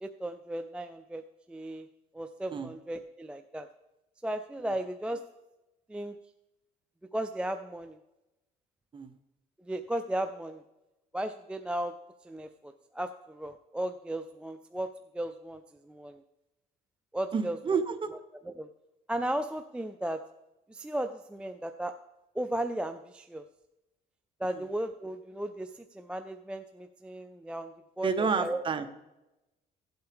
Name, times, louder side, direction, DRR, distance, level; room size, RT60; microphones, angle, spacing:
voice 1, 0.0-1.2 1.5-1.9 2.1-3.7 4.2-5.2 5.9-6.2 7.1-8.0 9.6-10.6 11.1-11.9 12.2-16.2 17.1-17.6 18.5-18.7 19.1-20.2 20.7-21.9 22.4-23.4 24.4-28.6, right 1 dB, 5° right, 8 dB, 0.4 m, -35 dB
voice 2, 17.3-18.1 24.4-24.6 28.0-28.9, right 5 dB, 30° right, 9 dB, 0.9 m, -29 dB
15.5 x 8.0 x 3.5 m, 0.98 s
cardioid pair, 110°, 17 cm